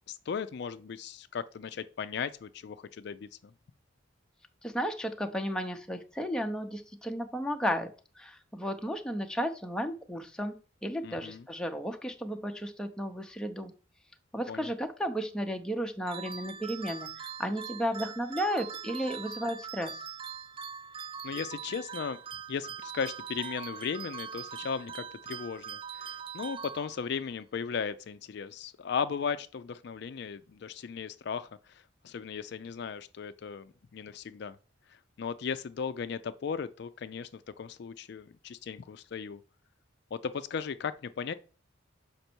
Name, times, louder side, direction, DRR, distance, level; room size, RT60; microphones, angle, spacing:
voice 1, 0.1-3.3 11.0-11.4 14.5-14.7 21.2-22.2 22.5-34.6 34.9-39.4 40.1-41.3, left 6 dB, 55° left, 0.4 m, -36 dB
voice 2, 4.6-7.9 8.2-10.5 10.8-13.7 14.3-20.1, equal, 5° left, 0.6 m, -33 dB
sound 1, 16.1-27.3, right 7 dB, 30° right, 0.3 m, -42 dB
6.6 x 5.2 x 4.4 m
head